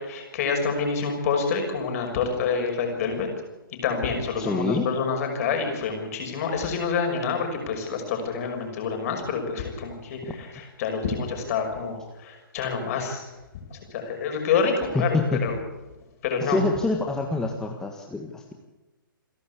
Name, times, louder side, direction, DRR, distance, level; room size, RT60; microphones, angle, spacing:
voice 1, 0.0-3.3 3.8-13.2 13.7-15.6 16.2-16.6, left 5 dB, 40° left, 3 dB, 6.2 m, -27 dB
voice 2, 4.4-4.8 14.9-15.4 16.4-18.5, left 3 dB, 5° left, 2 dB, 1.7 m, -26 dB
28.5 x 11.5 x 8.4 m, 1.1 s
figure-of-eight pair, 135°, 12 cm